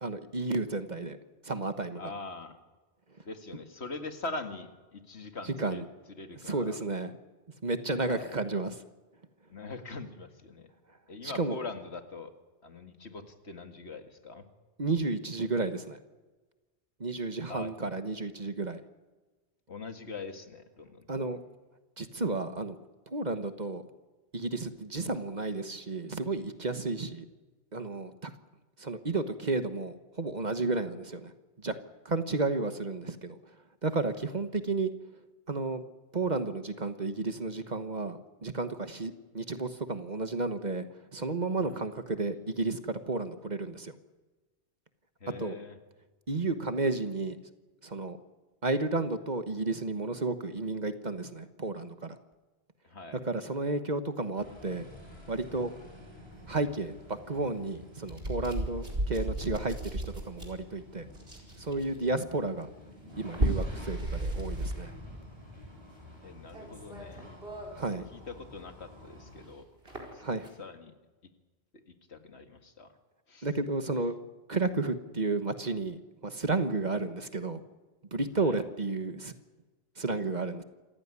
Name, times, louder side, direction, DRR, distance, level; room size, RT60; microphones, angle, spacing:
voice 1, 0.0-1.2 1.4-2.0 5.6-5.8 6.5-7.2 7.6-8.7 11.2-11.6 14.8-16.0 17.0-18.8 21.1-21.4 22.0-22.8 23.1-23.8 24.3-27.2 27.7-28.3 28.8-31.3 31.6-31.8 32.0-33.3 33.8-34.9 35.5-35.8 36.1-40.9 41.1-43.9 45.4-45.6 46.3-47.4 47.8-48.2 48.6-52.2 53.2-54.8 55.3-55.7 56.5-61.1 61.6-62.7 63.2-64.9 67.7-68.0 70.2-70.5 73.4-74.1 74.5-77.6 78.1-79.3 80.0-80.6, right 3 dB, 40° right, 10 dB, 1.4 m, -32 dB
voice 2, 2.0-2.6 3.3-5.8 6.1-6.8 8.0-8.4 9.5-10.7 11.1-12.3 12.6-14.5 17.5-17.7 19.7-21.3 41.6-41.8 45.2-45.8 52.8-53.2 66.2-67.3 68.1-69.7 70.1-70.2 70.6-70.9 71.9-72.9 73.3-73.5 78.4-78.6, left 3 dB, 75° left, 7 dB, 2.3 m, -42 dB
sound 1, 54.4-69.4, left 1 dB, 25° right, 7.3 m, -51 dB
sound 2, 56.7-56.8 58.0-60.7 61.1-62.0 63.1-65.1 65.3-65.7 66.5-67.9 68.2-68.3 69.1-69.2 69.9-70.5, right 1 dB, 60° right, 5.0 m, -34 dB
27.0 x 15.5 x 9.7 m, 1.2 s
omnidirectional pair, 1.1 m